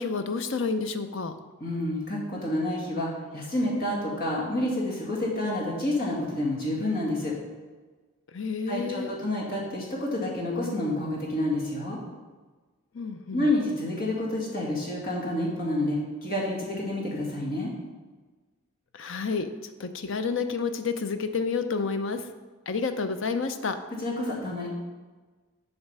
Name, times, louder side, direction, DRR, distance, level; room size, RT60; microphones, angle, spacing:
voice 1, 0.0-1.3 8.3-9.2 12.9-13.5 18.9-19.5 19.8-22.3 22.7-23.8, left 4 dB, 55° left, 9 dB, 0.6 m, -29 dB
voice 2, 1.6-7.3 8.7-12.0 13.3-17.7 24.0-24.7, left 1 dB, 40° left, -4 dB, 1.9 m, -29 dB
7.9 x 5.0 x 5.5 m, 1.3 s
head